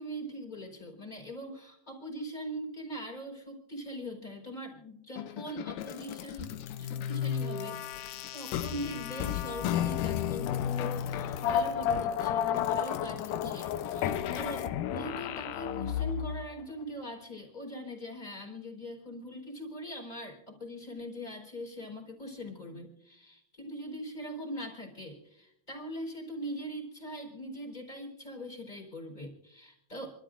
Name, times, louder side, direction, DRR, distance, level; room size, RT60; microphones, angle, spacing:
voice 1, 0.0-6.5 6.8-30.2, equal, 15° left, 1 dB, 3.7 m, -41 dB
sound 1, 5.2-16.4, left 9 dB, 80° left, 2.1 m, -32 dB
28.5 x 13.0 x 2.5 m, 0.81 s
omnidirectional pair, 3.9 m